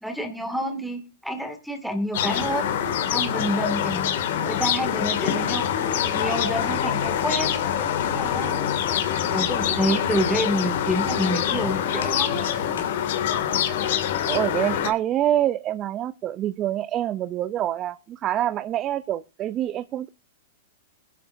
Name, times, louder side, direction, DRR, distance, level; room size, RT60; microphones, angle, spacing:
voice 1, 0.0-2.7 3.1-4.1 4.4-7.6 8.0-8.7 9.2-12.5, equal, ahead, 5 dB, 2.1 m, -28 dB
sound 1, 2.1-14.9, left 9 dB, 65° left, 2.2 m, -25 dB
Walk footsteps, 12.0-13.7, left 6 dB, 80° left, 3.4 m, -44 dB
voice 2, 14.3-20.1, right 12 dB, 30° right, 15 dB, 0.5 m, -26 dB
21.5 x 11.0 x 2.6 m, 0.30 s
hypercardioid pair, 120°, 0 cm